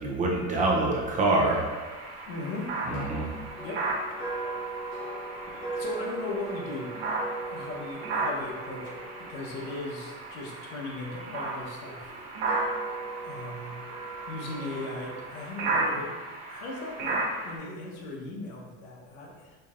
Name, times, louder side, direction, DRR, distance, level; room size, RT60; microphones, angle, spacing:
voice 1, 0.0-1.6 2.9-3.3 5.5-5.8, right 2 dB, 25° right, -2 dB, 0.6 m, -26 dB
sound 1, 1.3-17.6, right 2 dB, 90° right, 1.1 m, -35 dB
voice 2, 2.3-2.7 3.6-3.8 5.7-6.9 7.5-12.1 13.2-13.8 14.3-16.1 16.5-19.6, left 2 dB, 90° left, -1 dB, 1.0 m, -38 dB
sound 2, 2.9-11.1 11.8-15.3, right 3 dB, 55° left, 1.3 m, -39 dB
5.2 x 2.7 x 2.5 m, 1.3 s
cardioid pair, 155°, 31 cm